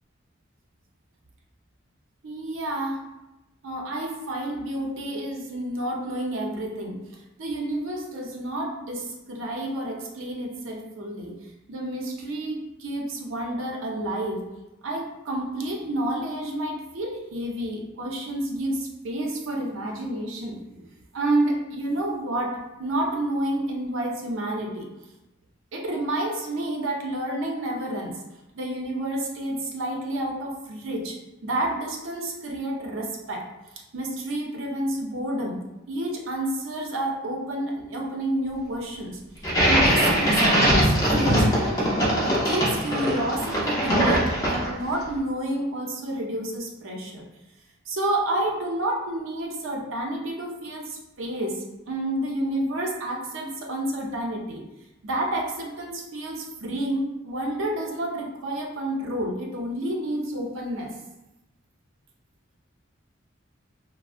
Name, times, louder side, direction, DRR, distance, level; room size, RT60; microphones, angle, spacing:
voice 1, 2.2-3.0 3.6-7.0 7.4-11.4 11.7-14.5 14.8-20.9 21.1-24.9 25.7-28.2 28.5-33.5 33.9-35.6 35.9-39.2 39.6-42.0 42.2-47.2 47.9-54.6 55.0-60.9, right 1 dB, 80° right, 0 dB, 0.6 m, -29 dB
sound 1, 39.4-44.9, equal, 15° left, 0.6 m, -21 dB
3.5 x 2.0 x 2.4 m, 0.97 s
head